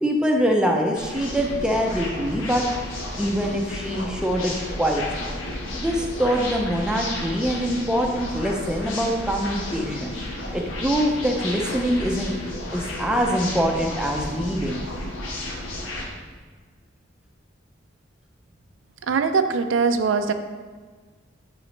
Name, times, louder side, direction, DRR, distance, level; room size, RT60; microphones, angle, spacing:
voice 1, 0.0-2.6 3.2-5.3 5.8-10.2 10.5-12.4 12.7-14.8, equal, 5° right, 0 dB, 0.5 m, -24 dB
sound 1, 0.9-16.0, left 1 dB, 85° left, 1.2 m, -32 dB
voice 2, 19.1-20.3, right 5 dB, 75° right, 9 dB, 0.4 m, -21 dB
8.9 x 3.9 x 3.2 m, 1.4 s
head